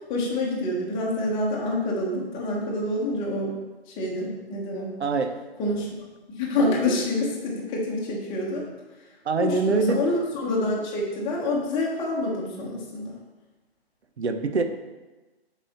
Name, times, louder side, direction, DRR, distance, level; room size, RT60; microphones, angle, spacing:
voice 1, 0.1-3.6 4.0-5.0 5.6-5.9 6.3-8.6 9.4-13.2, left 1 dB, 15° left, -4 dB, 0.9 m, -27 dB
voice 2, 5.0-5.3 9.3-10.0 14.2-14.6, right 4 dB, 85° right, 7 dB, 0.8 m, -23 dB
7.5 x 4.1 x 4.1 m, 1.2 s
hypercardioid pair, 155°, 32 cm